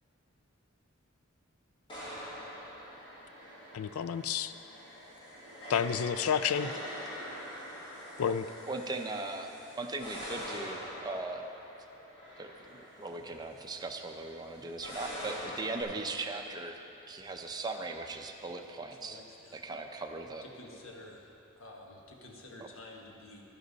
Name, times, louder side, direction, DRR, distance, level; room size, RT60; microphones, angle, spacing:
sound 1, 1.9-15.8, equal, 25° left, 2.0 m, -44 dB
voice 1, 3.7-4.5 5.7-6.7 8.2-8.4, left 8 dB, 85° left, 13 dB, 0.4 m, -30 dB
voice 2, 8.6-11.5 12.4-16.8 17.1-19.2 19.5-20.5, right 3 dB, 20° right, 3 dB, 0.6 m, -39 dB
voice 3, 19.0-19.6 20.4-23.4, left 1 dB, 70° left, -1 dB, 1.4 m, -50 dB
11.0 x 10.5 x 4.0 m, 2.9 s
head